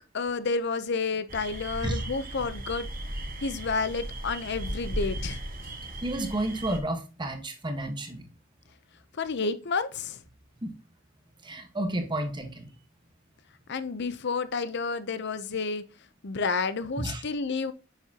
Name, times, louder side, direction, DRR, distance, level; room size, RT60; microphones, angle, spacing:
voice 1, 0.1-2.9 3.4-5.4 9.2-10.2 13.7-15.8 16.2-17.7, left 4 dB, 60° left, 0.7 m, -30 dB
sound 1, 1.3-6.8, right 1 dB, 45° right, 1.6 m, -36 dB
voice 2, 6.0-8.3 10.6-10.7 11.4-12.7 17.0-17.2, right 1 dB, 25° right, 1.3 m, -31 dB
9.8 x 6.6 x 2.9 m
head